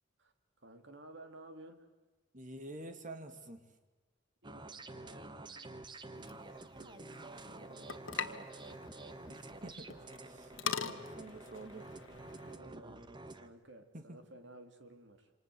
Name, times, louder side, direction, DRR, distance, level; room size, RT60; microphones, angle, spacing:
voice 1, 0.6-1.9 4.4-8.5 12.3-13.1 13.4-15.3, right 1 dB, 65° right, 7 dB, 3.0 m, -56 dB
voice 2, 2.3-3.7 9.3-9.9 10.2-11.9 13.9-14.2, right 1 dB, 40° right, 8 dB, 2.4 m, -48 dB
sound 1, 4.4-13.5, right 2 dB, 25° right, 1.3 m, -49 dB
sound 2, 6.2-12.6, left 6 dB, 80° left, 1.6 m, -44 dB
28.0 x 26.5 x 7.8 m, 1.2 s
head